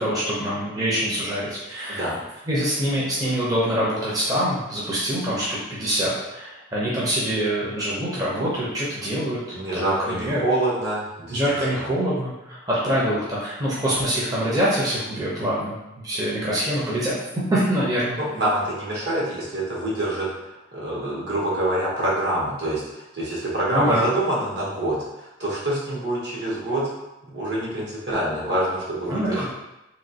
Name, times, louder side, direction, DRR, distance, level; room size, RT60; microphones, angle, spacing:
voice 1, 0.0-2.1 2.5-9.4 9.7-10.4 11.3-15.7 16.0-17.1 17.5-18.2 23.7-24.0 29.1-29.5, equal, 20° right, -7 dB, 0.6 m, -24 dB
voice 2, 9.5-11.4 11.7-11.8 18.2-20.3 20.7-26.9 27.3-29.5, right 1 dB, 65° right, -6 dB, 1.1 m, -26 dB
3.0 x 2.8 x 2.8 m, 0.93 s
head